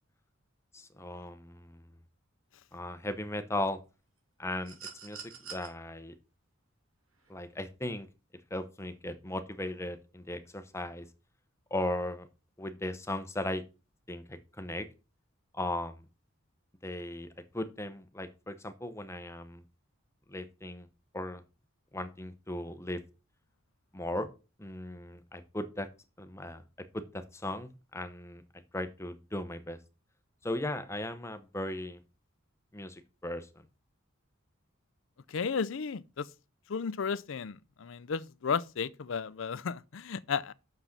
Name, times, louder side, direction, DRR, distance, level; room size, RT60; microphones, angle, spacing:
voice 1, 0.7-1.9 2.7-3.8 4.4-4.8 5.0-6.1 7.3-8.1 8.5-11.1 11.7-12.3 12.6-13.6 14.1-14.9 15.5-16.1 16.8-17.3 17.5-19.6 20.3-20.9 21.1-21.4 21.9-23.0 23.9-24.3 24.6-25.9 26.2-26.6 26.9-28.4 28.7-29.8 30.4-32.0 32.7-33.7, left 1 dB, 15° left, 0.8 m, -37 dB
sound 1, 4.6-5.7 7.2-7.3, right 6 dB, 90° right, 3.0 m, -45 dB
voice 2, 35.3-36.3 36.7-40.5, left 6 dB, 70° left, 0.5 m, -34 dB
6.5 x 6.1 x 5.9 m
head